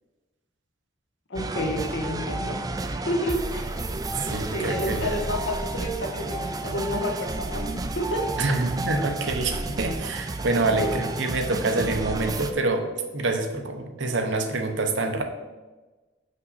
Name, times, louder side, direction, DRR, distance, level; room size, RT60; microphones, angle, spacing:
voice 1, 1.3-2.6 3.1-3.7 4.5-8.7 10.8-10.9, equal, 75° left, 2 dB, 1.1 m, -30 dB
sound 1, 1.3-12.5, right 2 dB, 20° right, 0.4 m, -31 dB
voice 2, 4.2-5.2 8.4-12.9 13.1-15.2, right 2 dB, 85° right, 5 dB, 0.9 m, -26 dB
5.6 x 5.1 x 4.1 m, 1.2 s
head